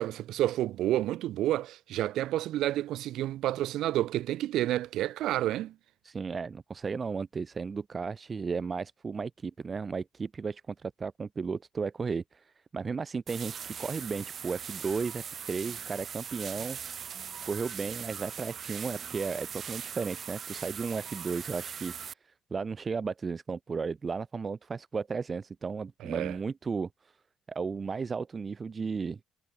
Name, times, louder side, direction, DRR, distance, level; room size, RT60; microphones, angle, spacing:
voice 1, 0.0-5.7 26.0-26.4, right 14 dB, 85° right, 3.2 m, -30 dB
voice 2, 6.0-12.4 12.7-16.8 17.4-21.9 22.5-26.9 27.5-29.2, right 5 dB, 35° right, 1.6 m, -34 dB
sound 1, 13.3-22.1, right 7 dB, 55° right, 3.2 m, -40 dB
cardioid pair, 90°, 0 cm